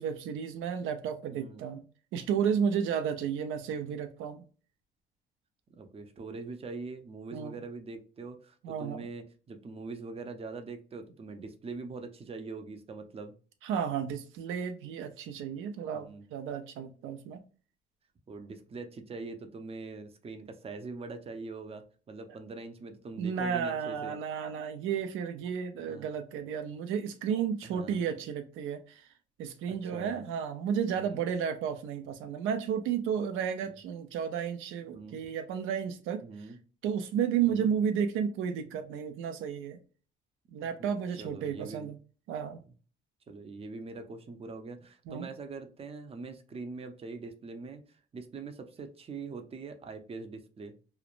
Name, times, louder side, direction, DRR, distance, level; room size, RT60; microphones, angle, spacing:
voice 1, 0.0-1.8 2.1-4.4 7.3-7.6 8.6-9.0 13.6-17.4 23.2-29.1 29.4-36.2 36.8-39.8 40.5-42.0 42.3-42.6 45.1-45.3, right 7 dB, 90° right, 0.4 m, -32 dB
voice 2, 1.3-1.6 5.7-13.3 15.9-16.2 18.3-24.1 25.8-26.1 27.6-28.0 29.9-30.2 31.0-31.2 34.9-35.2 36.2-36.6 37.5-37.7 40.6-40.9 41.2-41.9 43.3-50.7, right 4 dB, 30° right, 0.5 m, -43 dB
3.0 x 2.0 x 2.4 m
cardioid pair, 90°, 20 cm